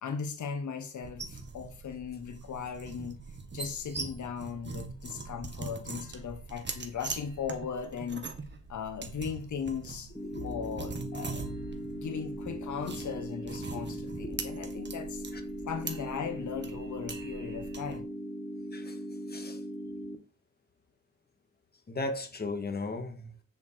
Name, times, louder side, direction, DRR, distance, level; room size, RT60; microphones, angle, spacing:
voice 1, 0.0-3.2 3.5-8.3 8.7-10.1 10.4-11.5 11.9-15.2 15.6-18.1, left 6 dB, 80° left, 1.4 m, -38 dB
sound 1, 1.0-18.0, right 4 dB, 40° right, 1.7 m, -42 dB
sound 2, 10.1-20.2, equal, 10° left, 1.6 m, -39 dB
voice 2, 19.3-19.6 21.9-23.3, left 2 dB, 35° left, 1.8 m, -36 dB
8.3 x 7.2 x 4.6 m
wide cardioid pair, 110°, 29 cm